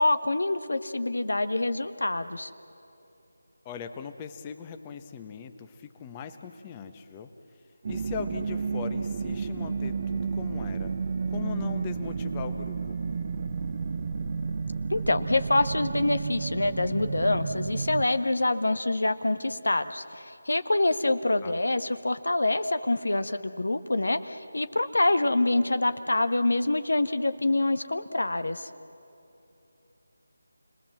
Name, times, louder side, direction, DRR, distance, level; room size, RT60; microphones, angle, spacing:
voice 1, 0.0-2.5 14.9-28.7, left 2 dB, 80° left, 10 dB, 1.4 m, -26 dB
voice 2, 3.6-7.3 7.9-10.9 11.3-13.0 21.4-21.6, left 7 dB, 15° left, 7 dB, 1.0 m, -39 dB
sound 1, 7.8-18.0, right 5 dB, 35° right, 0.8 m, -31 dB
29.5 x 20.5 x 7.6 m, 2.9 s
figure-of-eight pair, 165°, 0 cm